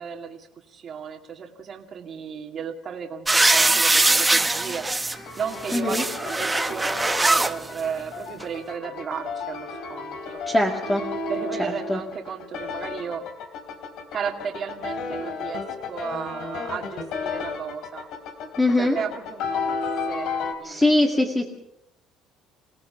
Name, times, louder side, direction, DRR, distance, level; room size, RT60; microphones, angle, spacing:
voice 1, 0.0-4.8 5.4-10.4 11.3-13.2 14.1-15.6 15.9-18.1 18.8-19.8 20.1-20.3 20.6-20.9, right 7 dB, 40° right, 1 dB, 2.3 m, -34 dB
sound 1, 3.3-5.2 5.5-7.5 8.4-8.5, right 2 dB, 10° right, 0.9 m, -21 dB
sound 2, 5.1-20.5, left 4 dB, 70° left, 3.7 m, -33 dB
voice 2, 5.7-6.0 10.5-11.0 11.9-12.0 18.6-19.0 20.6-21.4, left 1 dB, 15° left, 1 dB, 2.2 m, -21 dB
28.5 x 17.5 x 5.8 m, 0.80 s
cardioid pair, 125°, 0 cm